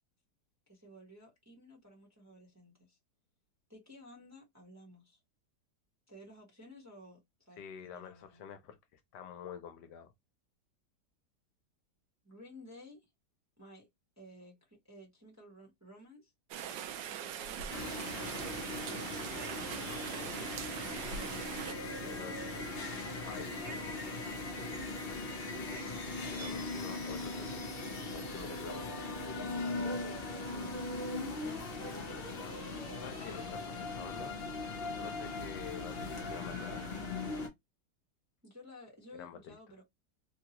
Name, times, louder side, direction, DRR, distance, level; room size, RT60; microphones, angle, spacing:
voice 1, 0.7-3.0 3.7-5.2 6.1-8.5 12.2-13.1 13.6-13.9 14.2-16.3 16.6-17.7 18.3-19.2 19.8-20.7 21.1-21.6 21.9-22.7 30.5-30.8 31.2-31.7 32.9-33.1 38.4-39.8, equal, 10° right, 0.9 m, -54 dB
voice 2, 7.6-10.1 22.0-22.3 23.3-29.0 31.4-31.6 32.2-34.4 34.9-37.1 39.1-39.5, left 8 dB, 75° left, 1.2 m, -49 dB
Rain, 16.5-21.7, right 9 dB, 90° right, 1.3 m, -41 dB
sound 1, 17.7-37.5, left 2 dB, 45° left, 0.8 m, -39 dB
sound 2, 17.7-25.8, right 2 dB, 40° right, 0.6 m, -56 dB
3.6 x 2.3 x 2.9 m
omnidirectional pair, 1.9 m